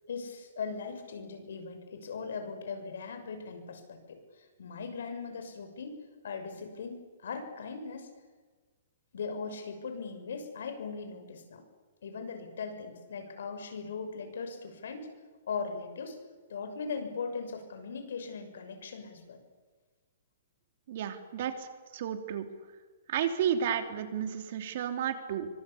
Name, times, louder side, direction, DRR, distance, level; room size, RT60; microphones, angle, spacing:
voice 1, 0.1-6.0 6.2-8.1 9.1-11.6 12.0-15.1 15.5-16.1 16.5-19.4, left 5 dB, 80° left, 7 dB, 6.7 m, -39 dB
voice 2, 20.9-21.7 21.9-22.5 23.1-25.5, right 9 dB, 50° right, 7 dB, 3.2 m, -32 dB
26.0 x 24.5 x 8.6 m, 1.4 s
hypercardioid pair, 160°, 0 cm